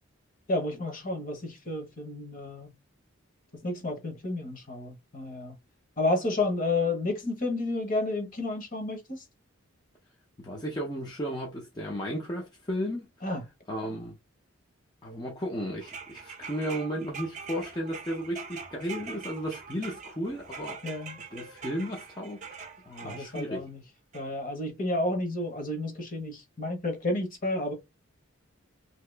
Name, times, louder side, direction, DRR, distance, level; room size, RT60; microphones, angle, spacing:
voice 1, 0.5-2.7 3.5-5.5 6.0-9.2 13.2-13.4 20.8-21.2 23.0-23.8 24.1-27.7, left 2 dB, 40° left, 1.1 m, -31 dB
voice 2, 10.4-13.1 13.7-14.2 15.0-20.8 21.3-22.5 22.9-23.7, equal, 20° left, 0.6 m, -34 dB
sound 1, 15.8-23.5 24.1-24.2, right 5 dB, 35° right, 0.6 m, -43 dB
2.9 x 2.8 x 3.2 m
head